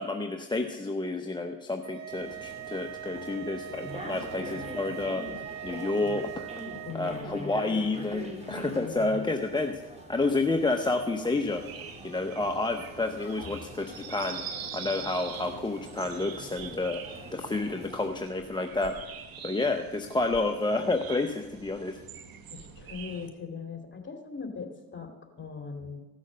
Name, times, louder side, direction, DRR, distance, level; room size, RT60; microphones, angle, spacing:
voice 1, 0.0-5.2 5.6-6.5 6.9-9.8 10.1-11.6 12.0-14.4 14.7-17.0 17.3-18.9 19.4-22.0, left 2 dB, 10° left, 4 dB, 0.7 m, -30 dB
sound 1, 1.8-7.0, right 11 dB, 45° right, 0.6 m, -41 dB
sound 2, 2.1-18.1, equal, 15° right, 2.8 m, -44 dB
voice 2, 6.8-7.5 8.7-9.3 13.5-13.6 22.5-26.0, left 5 dB, 30° left, 4 dB, 2.3 m, -40 dB
sound 3, 11.3-23.3, right 7 dB, 60° right, 1.3 m, -44 dB
15.0 x 6.3 x 6.4 m, 1.1 s
cardioid pair, 90°, 39 cm